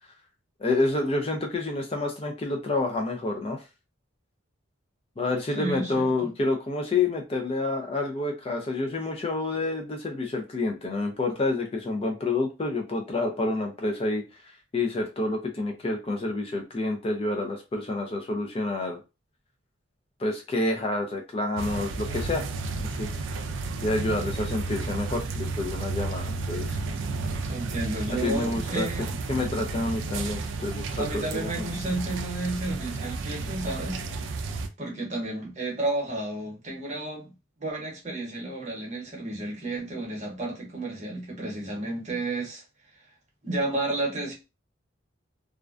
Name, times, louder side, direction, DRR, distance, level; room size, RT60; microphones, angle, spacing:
voice 1, 0.6-3.6 5.2-14.2 14.7-19.0 20.2-22.5 22.8-23.1 23.8-26.8 28.1-28.9 29.3-31.7, left 2 dB, 30° left, 0.4 m, -28 dB
voice 2, 5.5-6.1 27.5-29.2 31.0-34.0 34.8-37.3 37.6-42.6 43.4-44.3, right 2 dB, 35° right, 0.8 m, -32 dB
sound 1, 21.6-34.7, right 3 dB, 70° right, 0.3 m, -32 dB
2.4 x 2.1 x 2.4 m
head